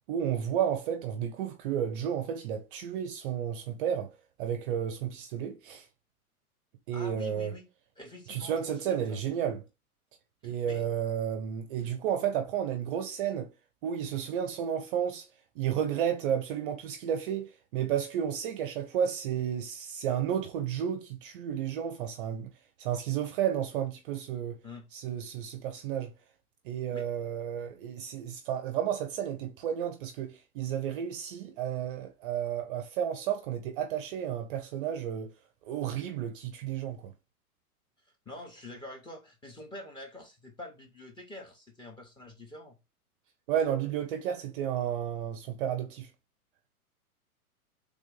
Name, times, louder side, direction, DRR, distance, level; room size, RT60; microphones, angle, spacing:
voice 1, 0.1-4.1 4.4-5.9 6.9-7.5 8.3-9.6 10.4-13.5 13.8-15.3 15.6-22.5 22.8-24.6 24.9-26.1 26.6-35.3 35.7-37.1 43.5-46.1, right 9 dB, 40° right, 0.5 m, -32 dB
voice 2, 6.9-7.7 8.0-9.2 10.4-10.9 24.6-24.9 26.9-27.1 38.3-42.8, left 2 dB, 10° left, 0.7 m, -46 dB
3.5 x 2.5 x 3.7 m
figure-of-eight pair, 105°, 45 cm